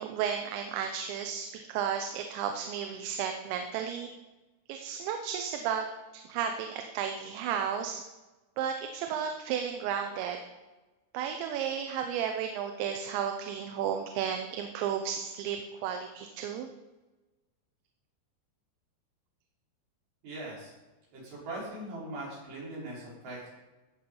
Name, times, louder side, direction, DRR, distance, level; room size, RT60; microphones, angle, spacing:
voice 1, 0.0-4.1 4.7-5.8 6.1-8.0 8.6-10.4 11.1-16.7, right 8 dB, 80° right, 5 dB, 3.1 m, -33 dB
voice 2, 20.2-20.7 21.1-23.5, right 1 dB, 65° right, -6 dB, 7.0 m, -40 dB
14.0 x 8.7 x 5.4 m, 1.1 s
omnidirectional pair, 5.3 m